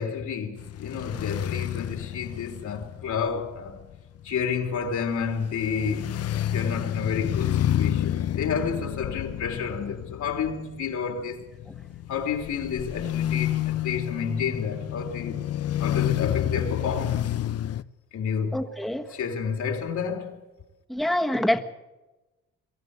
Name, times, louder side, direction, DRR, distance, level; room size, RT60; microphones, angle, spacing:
voice 1, 0.0-3.8 4.2-6.2 6.4-11.5 12.1-15.4 15.8-17.2 18.1-18.6 19.1-20.4, left 6 dB, 70° left, 3.4 m, -30 dB
sound 1, 0.6-17.8, left 11 dB, 55° left, 0.7 m, -30 dB
voice 2, 18.5-19.0 20.9-21.6, left 1 dB, ahead, 1.5 m, -25 dB
23.5 x 14.0 x 8.1 m
cardioid pair, 90°, 30 cm